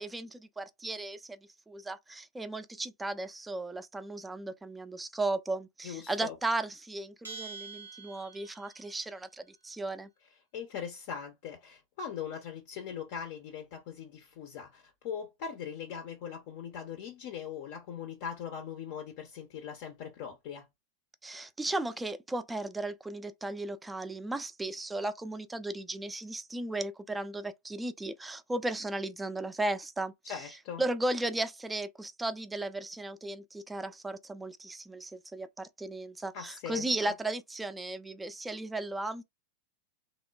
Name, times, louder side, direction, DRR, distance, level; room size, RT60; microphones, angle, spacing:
voice 1, 0.0-1.4 1.7-10.1 21.2-30.4 30.8-39.2, right 2 dB, 10° right, 0.3 m, -35 dB
voice 2, 5.8-6.3 10.5-20.7 30.2-30.8 36.3-37.1, left 7 dB, 45° left, 0.5 m, -40 dB
Bell, 7.2-8.8, right 5 dB, 80° right, 0.6 m, -45 dB
3.0 x 2.1 x 2.2 m
figure-of-eight pair, 90°, 0 cm